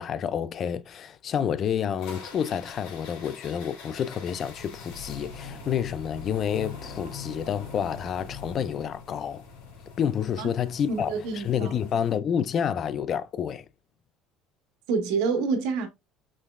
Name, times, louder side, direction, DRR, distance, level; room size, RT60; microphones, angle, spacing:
voice 1, 0.0-9.5 10.0-13.7, left 8 dB, 40° left, 0.3 m, -29 dB
sound 1, 2.0-12.2, left 4 dB, 75° left, 2.8 m, -43 dB
voice 2, 10.9-11.7 14.9-15.9, right 4 dB, 80° right, 1.3 m, -27 dB
5.2 x 3.0 x 2.3 m
cardioid pair, 135°, 0 cm